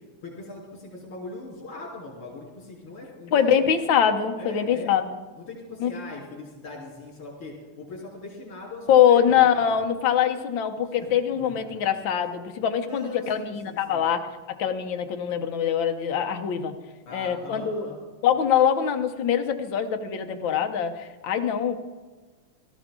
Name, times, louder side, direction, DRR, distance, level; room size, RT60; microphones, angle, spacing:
voice 1, 0.2-3.6 4.4-4.9 5.5-9.8 11.0-11.1 11.4-11.6 12.9-14.0 17.1-18.0, left 3 dB, 85° left, -4 dB, 4.2 m, -40 dB
voice 2, 3.3-5.2 5.8-5.9 8.9-16.7 17.1-17.9 18.2-21.8, left 8 dB, 65° left, 6 dB, 1.6 m, -23 dB
17.0 x 13.5 x 3.7 m, 1.4 s
omnidirectional pair, 2.4 m